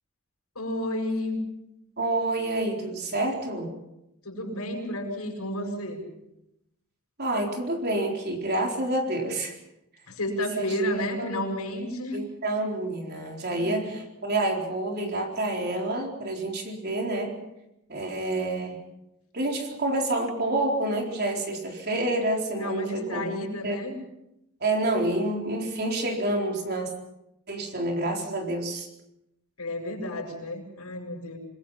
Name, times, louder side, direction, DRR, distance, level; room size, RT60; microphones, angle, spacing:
voice 1, 0.6-1.4 4.2-6.1 10.1-12.2 13.5-13.9 22.5-23.9 29.6-31.4, left 1 dB, 90° left, 1 dB, 7.3 m, -31 dB
voice 2, 2.0-3.7 7.2-9.5 10.6-10.7 11.2-11.4 12.1-17.3 17.9-18.8 19.3-23.3 23.6-23.8 24.6-26.9 27.5-28.9, right 1 dB, 45° right, 1 dB, 4.2 m, -28 dB
27.0 x 20.5 x 5.8 m, 0.86 s
head